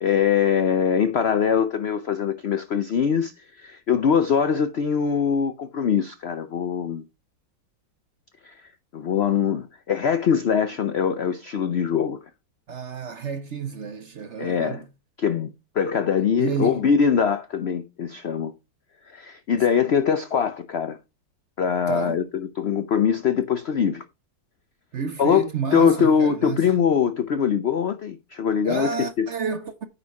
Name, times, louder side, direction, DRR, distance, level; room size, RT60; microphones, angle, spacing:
voice 1, 0.0-3.3 3.6-7.0 8.4-8.5 8.9-12.2 14.4-14.8 15.2-15.5 15.7-18.5 19.1-21.0 21.6-24.0 25.2-25.5 25.7-29.3, left 7 dB, 85° left, 0.5 m, -22 dB
voice 2, 12.7-14.9 16.4-16.8 21.9-22.2 24.9-26.7 28.6-29.9, right 5 dB, 55° right, 0.8 m, -30 dB
9.5 x 5.6 x 4.7 m
omnidirectional pair, 2.0 m